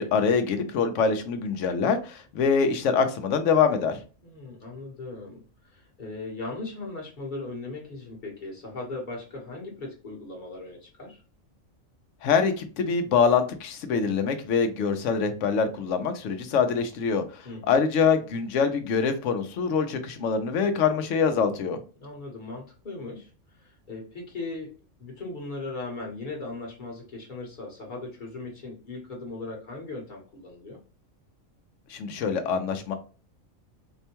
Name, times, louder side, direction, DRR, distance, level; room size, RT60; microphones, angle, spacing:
voice 1, 0.0-4.0 12.2-21.8 31.9-32.9, left 5 dB, 70° left, 1.0 m, -24 dB
voice 2, 4.2-11.2 17.4-17.8 22.0-30.8, left 3 dB, 40° left, 1.1 m, -38 dB
4.4 x 2.2 x 2.8 m
omnidirectional pair, 1.4 m